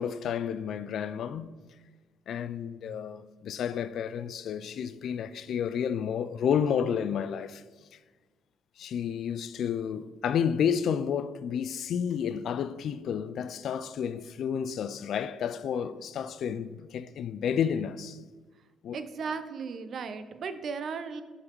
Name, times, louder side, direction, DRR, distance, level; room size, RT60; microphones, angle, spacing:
voice 1, 0.0-1.5 2.3-7.6 8.8-18.2 18.8-19.0, left 8 dB, 70° left, 0.3 m, -31 dB
voice 2, 18.9-21.2, right 5 dB, 55° right, 0.5 m, -36 dB
6.2 x 4.0 x 4.5 m
cardioid pair, 90°, 0 cm